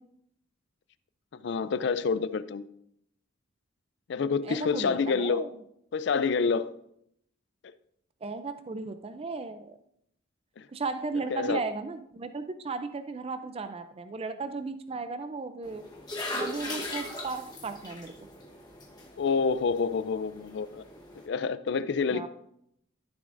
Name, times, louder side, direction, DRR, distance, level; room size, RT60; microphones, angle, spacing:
voice 1, 1.4-2.7 4.1-5.5 5.9-6.7 10.6-10.7 11.3-11.6 19.2-20.8 21.3-22.3, left 5 dB, 60° left, 0.4 m, -27 dB
voice 2, 4.4-5.5 8.2-9.8 10.7-15.8 16.4-18.1 22.1-22.3, right 4 dB, 30° right, 0.4 m, -35 dB
sound 1, 15.6-21.3, left 1 dB, 20° left, 1.1 m, -39 dB
13.0 x 7.1 x 2.5 m
head